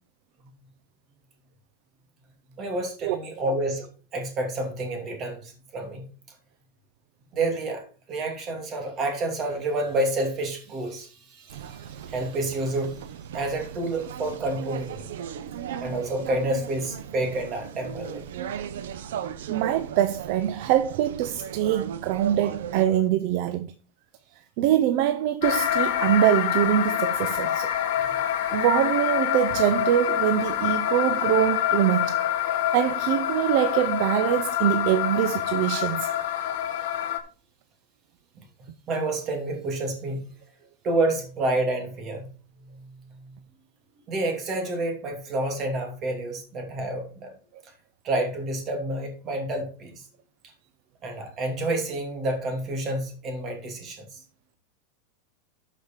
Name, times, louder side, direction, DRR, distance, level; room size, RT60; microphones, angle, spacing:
voice 1, 2.6-3.8 4.1-6.0 7.3-7.8 8.1-13.0 13.3-15.1 15.8-18.2 38.9-40.2 40.8-42.3 42.6-43.4 44.1-47.3 48.0-50.0 51.0-54.2, right 2 dB, 25° right, 2.5 m, -29 dB
sound 1, 11.5-22.9, right 9 dB, 80° right, 0.9 m, -37 dB
voice 2, 19.5-23.7 24.6-27.7 28.2-32.3 32.7-36.1, right 12 dB, 45° right, 0.5 m, -24 dB
sound 2, 25.4-37.2, left 11 dB, 55° left, 1.3 m, -26 dB
12.0 x 5.1 x 4.4 m
supercardioid pair, 165°, 0 cm